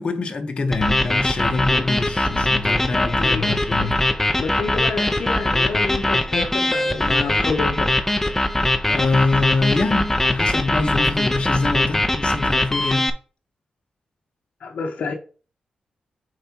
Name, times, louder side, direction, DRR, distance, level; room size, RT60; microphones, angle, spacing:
voice 1, 0.0-4.0 8.9-13.1, left 3 dB, 45° left, 1.0 m, -24 dB
sound 1, 0.7-13.1, left 1 dB, 15° left, 0.8 m, -21 dB
voice 2, 3.2-3.5 3.8-7.9 14.6-15.1, left 4 dB, 75° left, 0.9 m, -29 dB
7.6 x 4.9 x 2.9 m
cardioid pair, 95°, 3 cm